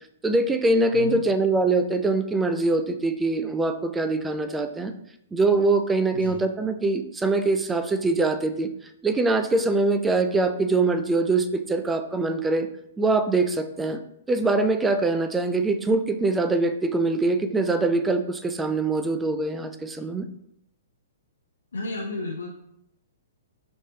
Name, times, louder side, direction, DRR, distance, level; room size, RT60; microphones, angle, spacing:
voice 1, 0.2-4.9 5.3-8.7 9.0-12.7 13.0-14.0 14.3-20.3, right 3 dB, 10° right, 8 dB, 0.3 m, -23 dB
voice 2, 21.7-22.5, left 2 dB, 75° left, -1 dB, 0.5 m, -32 dB
5.3 x 3.2 x 2.8 m, 0.77 s
figure-of-eight pair, 115°, 0 cm